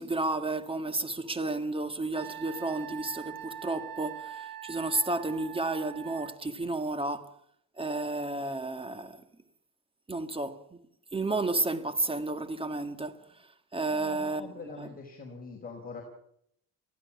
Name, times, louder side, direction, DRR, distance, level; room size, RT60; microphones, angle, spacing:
voice 1, 0.0-7.3 7.8-9.2 10.1-10.8 11.1-13.2 13.7-14.9, right 2 dB, 15° right, 1.9 m, -32 dB
Wind instrument woodwind instrument, 2.1-6.4, right 11 dB, 65° right, 1.3 m, -43 dB
voice 2, 13.9-16.0, left 4 dB, 25° left, 4.6 m, -43 dB
23.5 x 16.0 x 7.2 m
cardioid pair, 105°, 36 cm